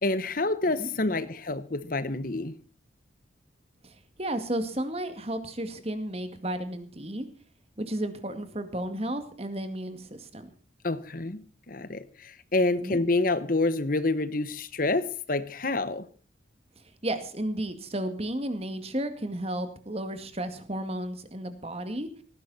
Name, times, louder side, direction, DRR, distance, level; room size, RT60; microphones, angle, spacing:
voice 1, 0.0-2.6 10.8-16.1, left 2 dB, 45° left, 1.0 m, -28 dB
voice 2, 4.2-7.3 7.8-10.5 12.8-13.0 17.0-22.1, right 1 dB, 30° right, 2.1 m, -33 dB
18.5 x 15.0 x 4.2 m
head